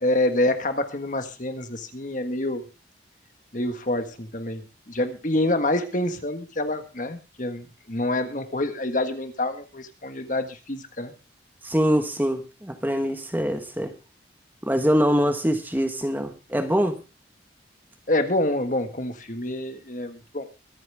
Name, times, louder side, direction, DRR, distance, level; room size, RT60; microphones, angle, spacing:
voice 1, 0.0-2.6 3.5-11.1 18.1-20.4, left 1 dB, 45° left, 8 dB, 1.6 m, -27 dB
voice 2, 11.6-13.9 14.6-17.0, equal, 10° right, 7 dB, 1.3 m, -24 dB
24.0 x 9.2 x 3.5 m, 0.30 s
head